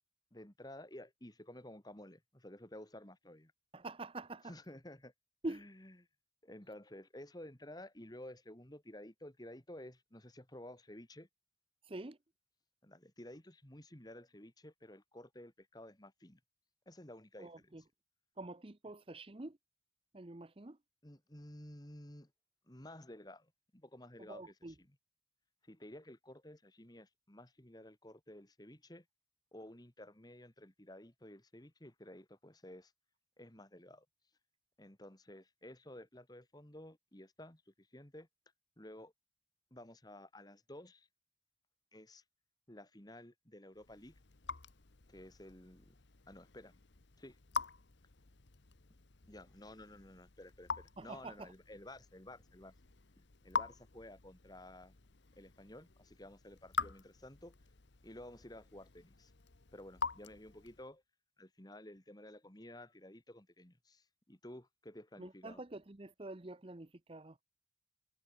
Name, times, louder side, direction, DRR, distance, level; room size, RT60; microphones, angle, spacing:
voice 1, 0.3-3.5 4.5-5.1 5.4-6.0 6.4-11.3 12.8-16.4 16.9-17.8 21.0-22.3 22.7-25.0 25.6-29.0 29.5-32.9 33.4-34.1 34.8-38.3 38.8-39.1 39.7-41.1 41.9-42.2 42.7-44.1 45.1-46.0 46.3-46.8 47.2-47.4 49.3-52.7 53.2-55.0 55.4-57.6 58.0-59.3 59.7-61.0 61.4-65.6, left 1 dB, 20° left, 2.2 m, -53 dB
voice 2, 3.7-4.5 5.4-5.6 11.8-12.2 17.4-17.8 18.4-19.6 20.1-20.8 24.2-24.7 51.0-51.5 65.2-67.4, right 2 dB, 30° right, 0.8 m, -46 dB
Raindrop / Drip, 43.7-60.9, left 5 dB, 70° left, 1.3 m, -45 dB
head